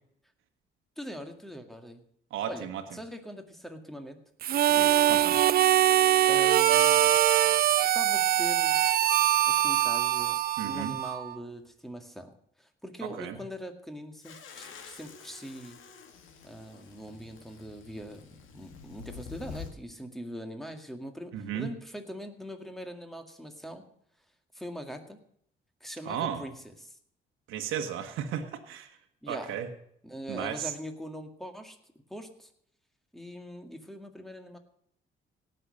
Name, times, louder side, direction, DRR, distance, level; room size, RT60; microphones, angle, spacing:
voice 1, 1.0-2.0 2.5-2.7 2.9-4.2 6.3-7.2 7.8-8.8 9.5-12.3 12.6-15.8 16.4-23.8 24.5-25.2 25.8-27.0 29.2-29.5 30.0-31.8 32.1-32.5 33.1-34.6, equal, ahead, 5 dB, 2.0 m, -42 dB
voice 2, 2.3-2.8 4.7-5.4 10.6-11.0 13.0-13.4 21.3-21.7 26.0-26.4 27.5-28.9 29.3-29.7 30.3-30.7, right 9 dB, 85° right, 4 dB, 1.4 m, -34 dB
Harmonica, 4.4-11.3, right 12 dB, 50° right, 0.4 m, -23 dB
sound 1, 14.2-19.7, left 6 dB, 85° left, 2.0 m, -47 dB
17.5 x 6.7 x 6.5 m, 0.70 s
cardioid pair, 90°, 20 cm